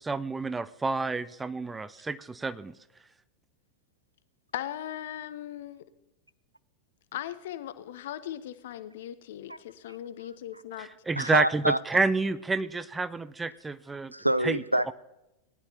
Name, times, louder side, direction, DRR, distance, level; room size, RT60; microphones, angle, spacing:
voice 1, 0.0-2.7 10.8-14.1 14.4-14.9, right 3 dB, 10° right, 16 dB, 0.5 m, -29 dB
voice 2, 4.5-5.8 7.1-10.9, left 11 dB, 55° left, 14 dB, 0.7 m, -38 dB
voice 3, 11.2-11.8 14.1-14.9, right 1 dB, 85° right, 17 dB, 0.4 m, -26 dB
19.0 x 10.5 x 2.8 m, 0.93 s
figure-of-eight pair, 90°, 0 cm